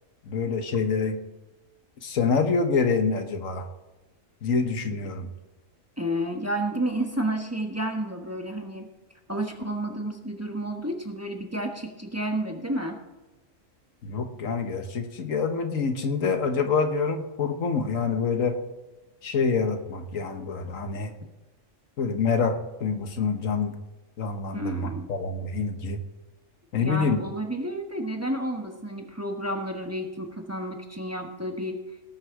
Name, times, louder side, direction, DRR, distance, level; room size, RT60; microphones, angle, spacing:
voice 1, 0.3-1.2 2.0-3.7 4.4-5.3 14.0-18.6 19.2-21.1 22.0-23.7 24.2-26.0 26.7-27.2, left 5 dB, 85° left, 6 dB, 1.6 m, -26 dB
voice 2, 6.0-8.9 9.3-13.0 24.5-25.1 26.8-31.8, right 1 dB, 15° right, 3 dB, 1.1 m, -31 dB
18.0 x 6.4 x 4.8 m, 1.1 s
omnidirectional pair, 1.3 m